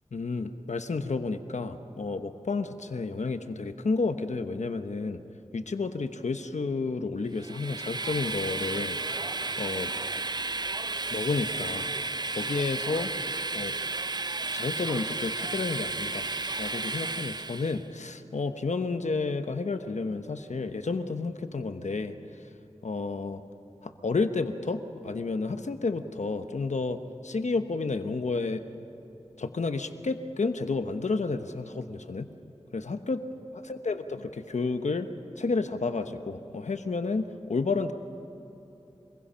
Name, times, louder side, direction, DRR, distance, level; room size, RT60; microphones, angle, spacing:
voice 1, 0.1-5.2 5.5-9.0 9.6-9.9 11.1-11.9 12.3-13.1 13.5-13.7 14.5-16.3 16.6-22.1 22.8-23.4 23.8-28.6 29.4-32.3 32.7-33.2 33.7-35.1 35.4-37.9, left 3 dB, 85° left, 8 dB, 1.0 m, -31 dB
Train, 7.4-17.8, right 3 dB, 35° right, 0.5 m, -33 dB
25.5 x 21.0 x 5.7 m, 3.0 s
wide cardioid pair, 60°, 12 cm